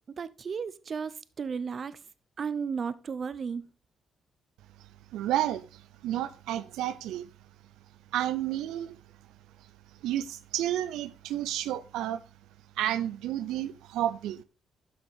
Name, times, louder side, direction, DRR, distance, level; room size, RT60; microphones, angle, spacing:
voice 1, 0.1-2.0 2.4-3.6, right 6 dB, 45° right, 0.6 m, -34 dB
voice 2, 4.8-7.3 8.1-9.0 10.0-12.2 12.8-14.4, right 12 dB, 90° right, 0.5 m, -31 dB
11.5 x 6.2 x 3.5 m
cardioid pair, 90°, 0 cm